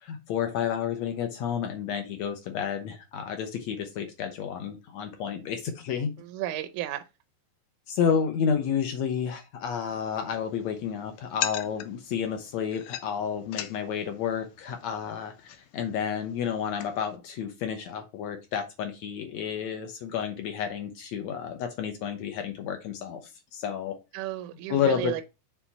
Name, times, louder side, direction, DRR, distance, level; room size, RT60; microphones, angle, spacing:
voice 1, 0.0-6.2 7.9-23.2 23.5-24.0 24.7-25.1, left 7 dB, 70° left, 1.9 m, -30 dB
voice 2, 6.2-7.1 24.1-25.2, right 13 dB, 80° right, 1.9 m, -33 dB
sound 1, 9.9-17.2, left 12 dB, 85° left, 1.5 m, -41 dB
7.2 x 3.4 x 4.1 m
omnidirectional pair, 3.7 m